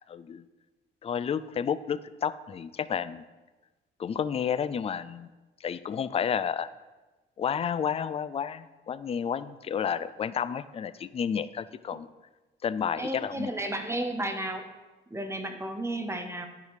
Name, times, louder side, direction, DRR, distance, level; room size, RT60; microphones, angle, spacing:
voice 1, 0.1-0.4 1.0-3.2 4.0-5.3 5.6-6.7 7.4-12.1 12.6-13.5, left 7 dB, 30° left, 15 dB, 0.4 m, -31 dB
voice 2, 13.0-14.6 15.1-16.5, right 1 dB, 15° right, 6 dB, 0.9 m, -33 dB
8.8 x 5.1 x 4.8 m, 1.2 s
cardioid pair, 90°, 20 cm